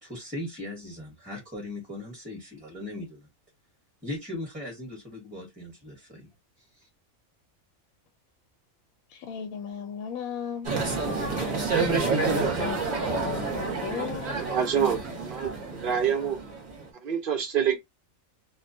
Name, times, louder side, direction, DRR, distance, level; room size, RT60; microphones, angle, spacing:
voice 1, 0.0-3.3 4.0-6.3 6.6-6.9, left 1 dB, 5° right, 0.9 m, -39 dB
voice 2, 9.1-10.7 11.0-14.3, left 8 dB, 80° left, 1.0 m, -36 dB
sound 1, 10.6-16.8, right 4 dB, 35° right, 0.8 m, -29 dB
voice 3, 14.3-15.0 15.2-16.4 17.0-17.8, right 8 dB, 60° right, 0.5 m, -26 dB
2.3 x 2.2 x 2.5 m
omnidirectional pair, 1.4 m